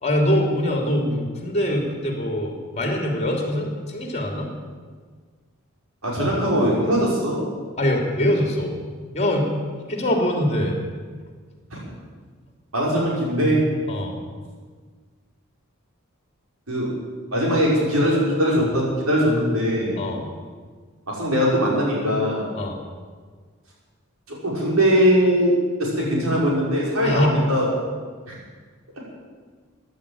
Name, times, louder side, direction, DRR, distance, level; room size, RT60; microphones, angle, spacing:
voice 1, 0.0-4.5 7.8-8.8 9.1-9.5 9.9-10.8 13.9-14.2 20.0-20.3 22.5-22.8 27.0-27.3, left 1 dB, 30° left, 2 dB, 3.3 m, -23 dB
voice 2, 6.0-7.4 12.7-13.6 16.7-16.9 17.3-19.9 21.1-22.5 24.3-27.7, equal, 85° right, -4 dB, 5.7 m, -21 dB
15.5 x 10.5 x 8.9 m, 1.5 s
head